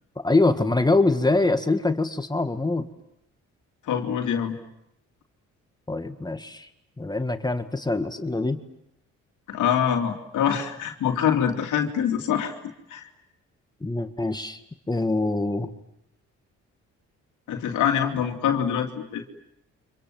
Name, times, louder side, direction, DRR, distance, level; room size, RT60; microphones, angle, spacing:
voice 1, 0.2-2.9 5.9-6.7 7.0-8.6 13.8-14.6 14.9-15.7, left 2 dB, 15° left, 8 dB, 1.8 m, -24 dB
voice 2, 3.9-4.6 9.5-12.5 12.9-13.1 17.5-19.2, left 8 dB, 80° left, 3 dB, 2.7 m, -24 dB
29.5 x 26.0 x 7.7 m, 0.79 s
cardioid pair, 90°, 30 cm